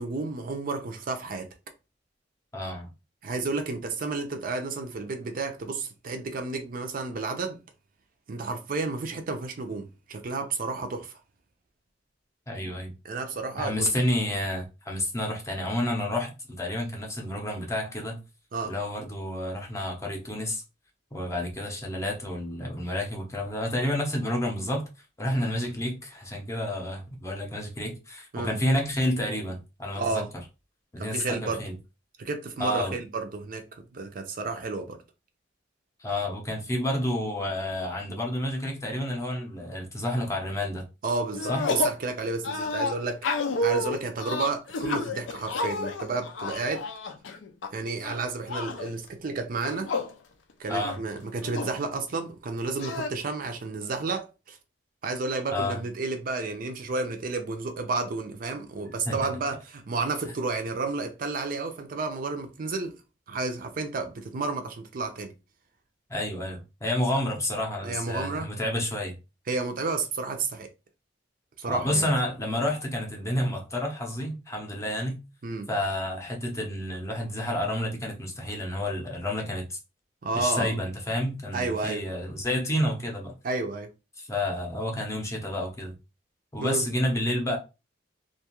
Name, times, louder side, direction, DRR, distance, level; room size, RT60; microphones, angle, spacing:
voice 1, 0.0-1.5 3.2-7.6 8.3-11.2 13.0-13.9 18.5-18.7 28.3-28.6 30.0-30.3 31.0-31.6 32.2-35.0 41.0-46.8 47.7-49.9 50.6-54.6 55.0-62.9 63.3-65.3 67.8-68.5 69.5-70.7 71.6-72.1 75.4-75.7 80.2-80.7 81.5-82.0 83.4-83.9 86.6-86.8, right 3 dB, 50° right, 0.5 m, -31 dB
voice 2, 2.5-2.9 12.5-12.9 13.6-18.2 18.6-20.6 21.1-24.8 25.2-30.3 30.9-31.7 32.6-33.0 36.0-40.9 41.5-41.7 50.7-51.0 55.5-55.8 59.1-59.2 66.1-69.2 71.7-75.2 75.7-79.8 80.3-83.4 84.2-85.9 86.5-87.6, left 1 dB, 15° left, 0.6 m, -30 dB
sound 1, 41.3-42.0 42.4-47.7 48.0-48.9 49.5-50.1 50.5-50.6 50.8-51.8 52.8-53.1, left 2 dB, 85° left, 0.5 m, -30 dB
2.5 x 2.3 x 2.9 m
head